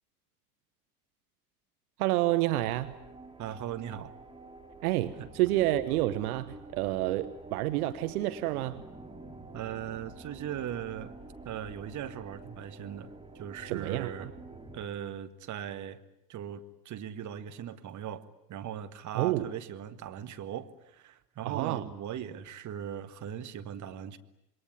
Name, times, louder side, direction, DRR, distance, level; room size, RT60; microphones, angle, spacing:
voice 1, 2.0-2.9 4.8-8.8 13.6-14.1 19.1-19.5 21.4-21.9, right 16 dB, 60° right, 12 dB, 1.2 m, -29 dB
sound 1, 2.5-14.9, right 2 dB, 10° right, 3.6 m, -48 dB
voice 2, 3.4-4.1 5.2-5.3 9.5-11.1 11.4-14.3 14.7-16.0 16.3-24.2, right 10 dB, 35° right, 10 dB, 1.7 m, -39 dB
27.0 x 22.0 x 9.6 m, 0.83 s
figure-of-eight pair, 70°, 49 cm